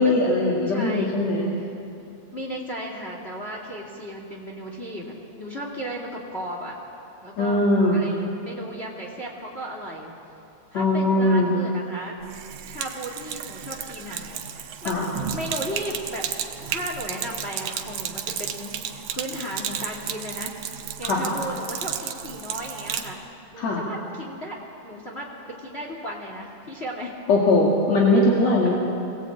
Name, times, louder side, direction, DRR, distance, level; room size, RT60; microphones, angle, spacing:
voice 1, 0.0-1.5 7.4-8.1 10.7-11.6 14.9-15.1 21.0-21.3 23.6-23.8 27.3-28.7, left 2 dB, 65° left, -4 dB, 3.5 m, -20 dB
voice 2, 0.7-1.1 2.3-6.7 7.2-7.6 7.9-10.1 10.7-12.2 12.7-15.0 15.3-16.3 16.7-20.5 21.0-23.2 23.5-24.6 24.8-25.3 25.6-27.2, equal, 20° left, -1 dB, 2.4 m, -35 dB
Sink (filling or washing), 12.2-23.1, right 9 dB, 90° right, 2.5 m, -33 dB
24.0 x 18.0 x 8.7 m, 2.7 s
omnidirectional pair, 3.4 m